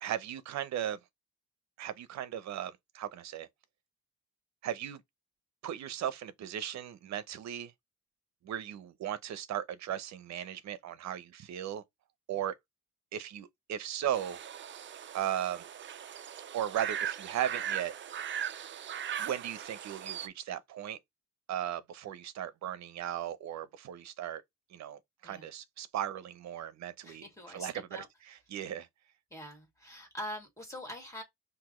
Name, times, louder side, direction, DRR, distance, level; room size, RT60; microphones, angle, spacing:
voice 1, 0.0-1.0 1.8-3.5 4.6-5.0 5.6-7.7 8.4-11.8 12.3-12.6 13.1-14.4 15.1-15.6 16.5-17.9 19.2-21.0 21.5-24.4 24.7-27.9 28.5-28.9, right 10 dB, 65° right, 0.8 m, -37 dB
sound 1, 14.1-20.3, right 9 dB, 40° right, 0.5 m, -39 dB
voice 2, 27.0-28.1 29.3-31.2, equal, 10° left, 2.5 m, -43 dB
5.7 x 2.7 x 3.1 m
cardioid pair, 90°, 30 cm